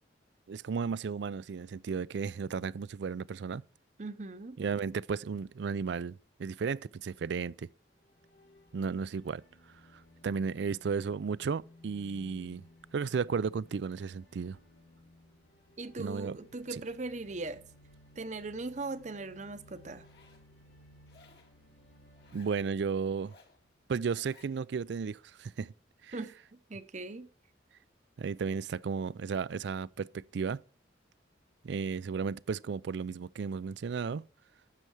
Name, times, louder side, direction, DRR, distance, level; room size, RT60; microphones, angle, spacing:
voice 1, 0.5-3.6 4.6-7.7 8.7-9.4 9.9-12.6 12.9-14.6 16.0-16.4 16.7-16.8 22.3-23.3 23.9-25.7 26.0-26.2 28.2-30.6 31.6-34.2, right 5 dB, 70° right, 0.4 m, -34 dB
voice 2, 4.0-4.6 15.8-17.6 18.2-20.1 26.1-26.3 26.7-27.3, right 3 dB, 40° right, 0.8 m, -39 dB
sound 1, 7.9-24.0, left 1 dB, 90° left, 2.3 m, -59 dB
Zipper (clothing), 19.9-20.4 21.1-21.5 22.1-22.6 23.1-23.6 24.1-24.5, left 4 dB, 60° left, 2.3 m, -61 dB
12.0 x 7.6 x 4.7 m
head